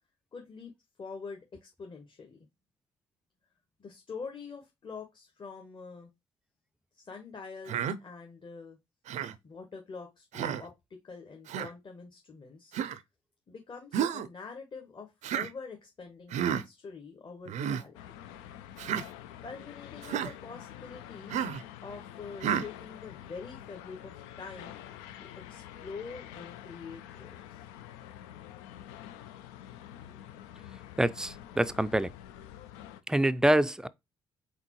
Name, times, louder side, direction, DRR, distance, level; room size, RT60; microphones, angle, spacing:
voice 1, 0.3-0.7 1.0-2.4 3.8-6.1 6.9-8.8 9.4-12.8 13.5-18.0 19.4-21.4 21.8-24.8 25.2-27.6, left 5 dB, 35° left, 1.2 m, -45 dB
Human voice, 7.7-8.0 9.1-9.4 10.3-10.6 11.5-11.7 12.7-13.0 13.9-14.3 15.2-15.5 16.3-16.6 17.5-17.8 18.8-19.1 20.0-20.3 21.3-21.6 22.4-22.7, right 9 dB, 60° right, 0.5 m, -31 dB
sound 1, 17.9-33.0, left 11 dB, 80° left, 0.4 m, -47 dB
voice 2, 31.0-32.1 33.1-33.9, right 1 dB, 5° right, 0.4 m, -26 dB
4.1 x 3.6 x 3.0 m
hypercardioid pair, 45°, 13 cm